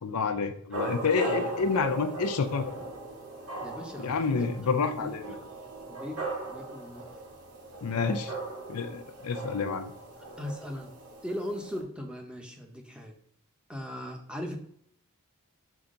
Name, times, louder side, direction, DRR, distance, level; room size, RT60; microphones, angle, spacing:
voice 1, 0.0-2.7 4.0-5.3 7.8-8.3 8.7-9.9, left 5 dB, 85° left, 8 dB, 0.6 m, -29 dB
sound 1, 0.7-11.8, right 2 dB, 70° right, 2.0 m, -38 dB
voice 2, 3.6-4.5 5.0-5.1 5.9-7.1 10.4-10.9 11.2-13.1 13.7-14.6, equal, 5° right, 2 dB, 1.0 m, -39 dB
5.8 x 4.5 x 3.9 m, 0.65 s
head